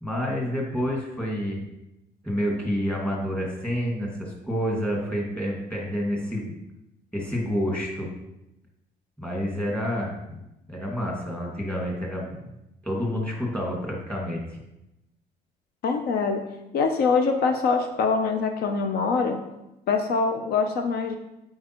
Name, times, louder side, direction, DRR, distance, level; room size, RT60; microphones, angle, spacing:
voice 1, 0.0-1.6 2.2-6.6 7.1-8.1 9.2-10.4 10.7-12.5 12.8-14.6, equal, 5° left, -2 dB, 1.9 m, -29 dB
voice 2, 15.8-16.4 16.7-19.4 19.9-21.2, left 4 dB, 70° left, 5 dB, 0.6 m, -24 dB
8.3 x 4.5 x 3.0 m, 0.91 s
cardioid pair, 110°, 17 cm